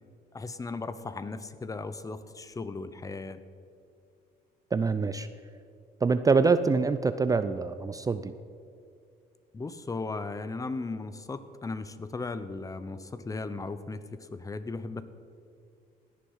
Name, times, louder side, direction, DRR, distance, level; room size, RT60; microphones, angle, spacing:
voice 1, 0.3-3.4 9.5-15.0, left 3 dB, 20° left, 13 dB, 0.8 m, -36 dB
voice 2, 4.7-5.3 6.0-8.3, right 4 dB, 20° right, 11 dB, 0.5 m, -25 dB
17.0 x 10.0 x 5.6 m, 2.3 s
cardioid pair, 110°, 17 cm